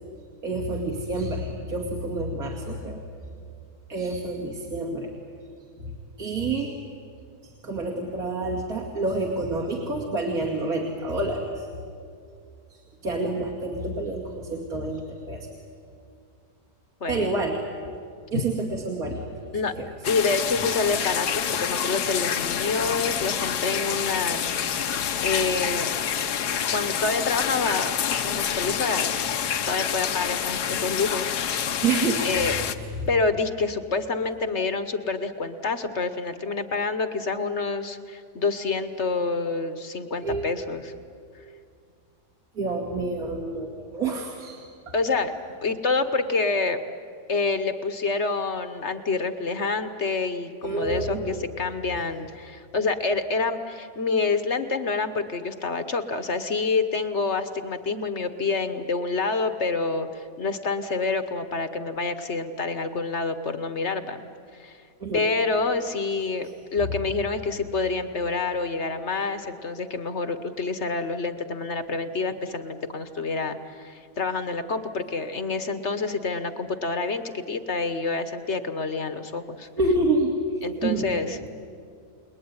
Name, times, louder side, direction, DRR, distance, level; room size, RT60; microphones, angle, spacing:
voice 1, 0.4-3.0 3.9-5.1 6.2-6.7 7.4-11.7 13.0-15.5 17.1-17.6 18.3-19.9 31.8-32.2 40.2-40.5 42.6-44.9 50.6-51.4 65.0-65.3 79.7-80.3 80.8-81.1, right 3 dB, 55° right, 0 dB, 2.8 m, -28 dB
voice 2, 17.0-17.3 18.3-18.4 19.5-19.8 20.1-25.9 26.7-27.9 28.2-29.1 29.7-31.3 31.6-31.8 32.2-32.5 33.1-40.9 44.9-45.3 45.6-46.8 47.3-64.2 64.6-64.8 65.1-79.7 80.6-81.4, left 4 dB, 45° left, 10 dB, 1.3 m, -27 dB
sound 1, 20.0-32.8, left 8 dB, 70° left, 1.5 m, -27 dB
29.5 x 20.5 x 9.7 m, 2.4 s
omnidirectional pair, 1.8 m